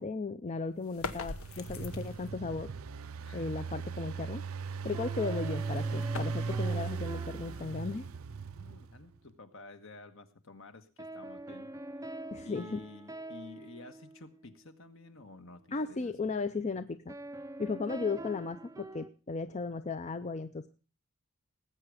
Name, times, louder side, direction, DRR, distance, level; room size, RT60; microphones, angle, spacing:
voice 1, 0.0-2.7 3.3-4.4 4.8-8.1 12.3-12.8 15.7-17.1 17.6-20.7, left 4 dB, 30° left, 11 dB, 0.5 m, -36 dB
sound 1, 0.8-2.4 5.1-8.1, left 3 dB, 80° left, 1.1 m, -44 dB
Engine, 1.0-9.0, right 5 dB, 75° right, 0.6 m, -37 dB
voice 2, 3.2-3.6 8.5-11.7 12.4-16.3, left 3 dB, 65° left, 8 dB, 1.4 m, -51 dB
sound 2, 4.9-8.3 11.0-14.8 17.1-19.1, right 1 dB, 15° right, 0.6 m, -45 dB
19.0 x 8.1 x 4.9 m, 0.36 s
head